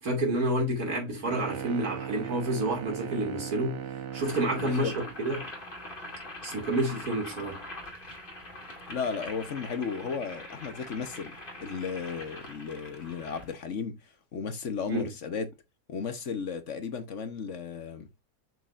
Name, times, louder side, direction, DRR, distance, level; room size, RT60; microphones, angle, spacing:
voice 1, 0.0-3.8 4.1-4.9 5.2-5.5 6.4-7.6 14.9-15.1, right 1 dB, 80° right, 3.2 m, -29 dB
sound 1, 1.3-5.2, right 8 dB, 55° right, 1.3 m, -38 dB
Boiling, 4.1-13.5, left 1 dB, 35° left, 2.6 m, -43 dB
voice 2, 4.6-4.9 8.9-11.3 11.6-14.0 14.3-15.5 15.9-18.1, left 5 dB, 55° left, 1.3 m, -34 dB
6.7 x 6.5 x 2.5 m
omnidirectional pair, 1.6 m